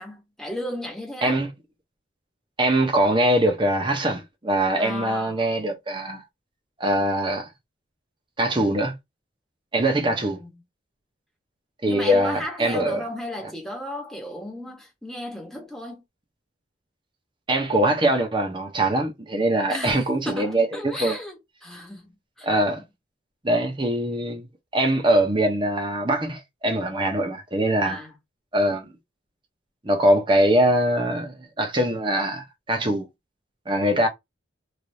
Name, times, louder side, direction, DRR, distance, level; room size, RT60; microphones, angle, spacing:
voice 1, 0.0-1.4 4.8-5.5 10.2-10.5 11.8-16.0 19.7-22.1 22.4-22.5 27.8-28.1, left 1 dB, ahead, 1.0 m, -35 dB
voice 2, 2.6-6.2 6.8-7.5 8.4-8.9 9.7-10.4 11.8-13.0 17.5-21.2 22.4-22.8 23.4-24.5 24.7-28.0 28.5-28.9 29.8-33.1 33.7-34.1, right 1 dB, 25° right, 0.8 m, -22 dB
3.3 x 2.6 x 2.7 m
head